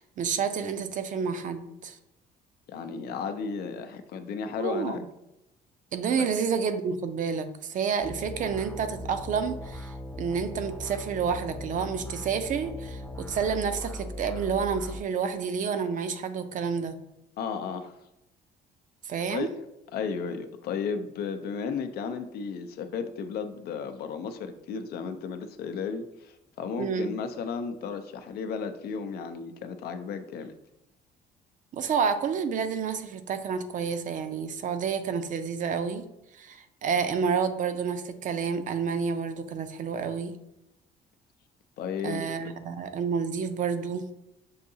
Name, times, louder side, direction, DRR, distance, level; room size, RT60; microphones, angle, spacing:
voice 1, 0.0-2.0 4.6-5.1 5.9-17.0 19.0-19.5 26.8-27.1 31.7-36.1 36.3-40.3 42.0-44.1, right 6 dB, 50° right, 9 dB, 0.5 m, -29 dB
voice 2, 2.7-5.0 6.2-6.3 17.4-17.9 19.3-19.5 19.9-30.5 41.8-42.3, left 6 dB, 65° left, 8 dB, 0.5 m, -34 dB
sound 1, 8.0-15.0, left 1 dB, 10° left, 0.4 m, -39 dB
6.4 x 2.7 x 2.7 m, 0.89 s
cardioid pair, 110°, 17 cm